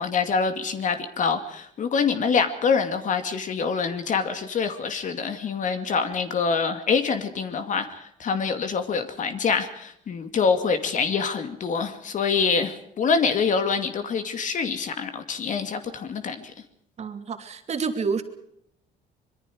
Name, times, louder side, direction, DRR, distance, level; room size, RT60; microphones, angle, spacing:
voice 1, 0.0-16.5, left 5 dB, 50° left, 8 dB, 2.4 m, -25 dB
voice 2, 17.0-18.2, right 5 dB, 40° right, 6 dB, 2.8 m, -28 dB
25.0 x 22.5 x 5.0 m, 0.68 s
cardioid pair, 110°, 17 cm